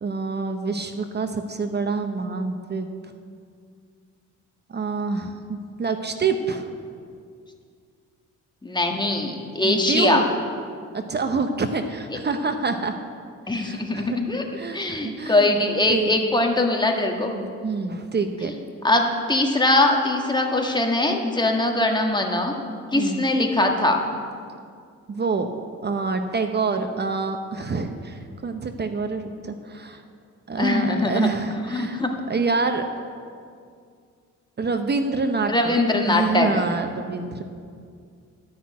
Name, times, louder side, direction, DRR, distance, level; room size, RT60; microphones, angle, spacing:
voice 1, 0.0-2.9 4.7-6.7 9.6-10.2 10.9-12.9 13.5-14.2 14.6-15.5 15.9-16.3 17.3-18.5 22.9-23.2 25.1-25.5 25.8-30.0 30.5-32.9 34.6-35.7 36.0-37.4, right 4 dB, 35° right, 7 dB, 0.9 m, -27 dB
voice 2, 8.6-10.2 13.5-14.4 14.7-17.3 18.8-22.5 22.9-24.0 30.6-31.3 31.7-32.1 35.5-36.7, left 2 dB, 15° left, 2 dB, 1.6 m, -21 dB
13.0 x 6.0 x 8.5 m, 2.2 s
cardioid pair, 90°, 30 cm